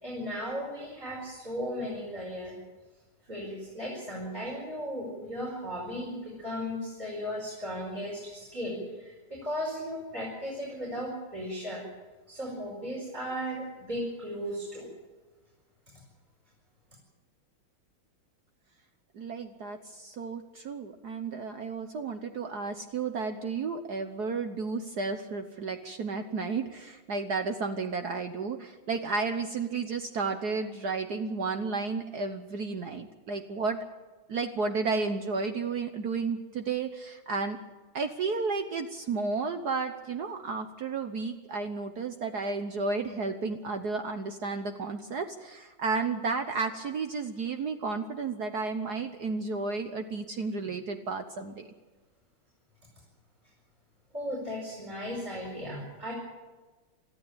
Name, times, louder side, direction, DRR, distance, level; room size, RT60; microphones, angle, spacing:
voice 1, 0.0-2.6 3.3-11.8 12.3-14.9 54.1-56.1, equal, 20° right, -4 dB, 5.4 m, -36 dB
voice 2, 19.1-33.8 34.3-37.6 37.9-51.7, right 4 dB, 55° right, 7 dB, 1.4 m, -32 dB
23.0 x 14.0 x 8.8 m, 1.3 s
omnidirectional pair, 2.3 m